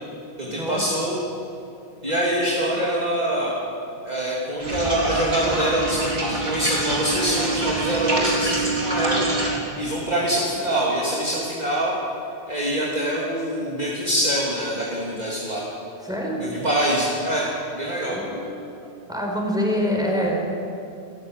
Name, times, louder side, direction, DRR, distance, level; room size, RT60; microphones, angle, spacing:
voice 1, 0.4-1.2 2.0-3.5 4.0-9.3 9.8-11.9 12.5-15.6 16.4-17.5 17.7-18.3, right 1 dB, 35° right, -6 dB, 3.1 m, -24 dB
sound 1, 4.6-9.6, right 2 dB, 55° right, 4.0 m, -25 dB
voice 2, 16.0-16.4 18.1-18.4 19.1-20.4, equal, 5° right, -1 dB, 4.7 m, -25 dB
28.0 x 14.0 x 7.9 m, 2.7 s
omnidirectional pair, 1.3 m